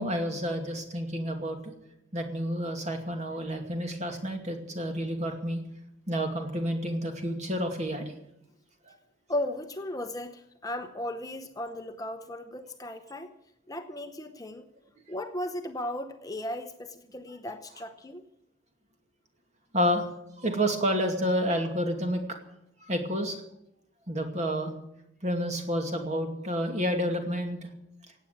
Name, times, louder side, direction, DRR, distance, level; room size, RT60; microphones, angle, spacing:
voice 1, 0.0-1.6 2.1-5.6 6.1-8.1 19.7-20.0 20.4-22.2 22.8-23.4 24.1-24.7 25.2-27.6, equal, 35° right, 4 dB, 2.5 m, -29 dB
voice 2, 9.3-13.3 13.7-14.6 15.1-18.2, left 1 dB, 20° left, 7 dB, 0.8 m, -36 dB
16.5 x 8.8 x 9.4 m, 0.81 s
head